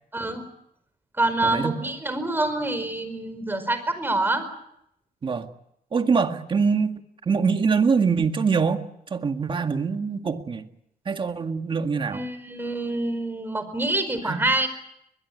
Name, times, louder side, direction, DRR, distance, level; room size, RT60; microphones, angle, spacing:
voice 1, 0.1-0.4 1.2-4.5 12.1-14.7, right 2 dB, 15° right, 10 dB, 4.9 m, -26 dB
voice 2, 1.4-1.8 5.2-5.5 5.9-6.9 7.3-8.8 9.1-10.6 11.1-12.3 14.3-14.4, right 5 dB, 30° right, 7 dB, 1.9 m, -23 dB
22.0 x 21.0 x 9.5 m, 0.78 s
cardioid pair, 125°, 16 cm